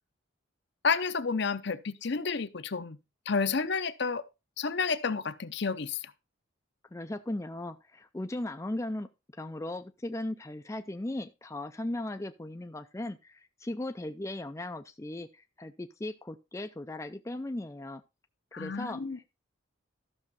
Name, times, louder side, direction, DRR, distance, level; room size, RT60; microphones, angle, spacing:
voice 1, 0.8-3.0 3.3-4.2 4.6-6.1 18.5-19.2, left 5 dB, 55° left, 0.7 m, -30 dB
voice 2, 6.9-18.0 18.5-19.3, left 1 dB, 15° left, 0.4 m, -37 dB
13.0 x 6.2 x 4.1 m
head